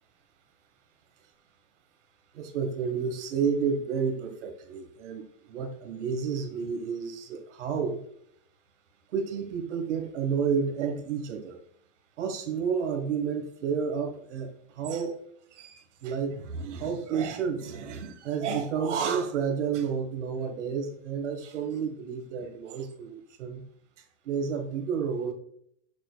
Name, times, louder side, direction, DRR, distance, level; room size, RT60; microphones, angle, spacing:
voice 1, 2.3-5.2 5.5-8.0 9.1-11.6 12.2-15.2 15.5-23.6 24.2-25.3, right 6 dB, 70° right, 5 dB, 1.6 m, -30 dB
7.2 x 6.3 x 2.3 m, 0.67 s
supercardioid pair, 150°, 36 cm